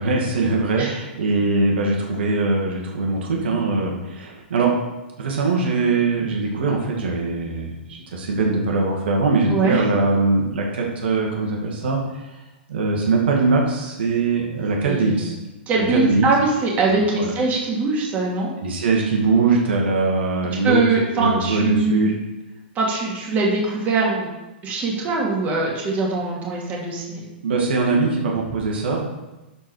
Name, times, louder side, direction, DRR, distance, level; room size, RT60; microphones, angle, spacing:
voice 1, 0.0-4.7 5.2-12.4 12.7-15.3 15.9-16.3 16.9-17.3 18.6-20.8 21.1-22.1 27.4-29.0, right 3 dB, 70° right, -1 dB, 2.1 m, -21 dB
voice 2, 9.5-9.8 14.8-15.2 15.7-18.5 20.6-22.1 22.7-24.3 24.6-27.3, right 3 dB, 25° right, -2 dB, 2.5 m, -22 dB
12.0 x 4.6 x 4.8 m, 1.0 s
hypercardioid pair, 125°, 6 cm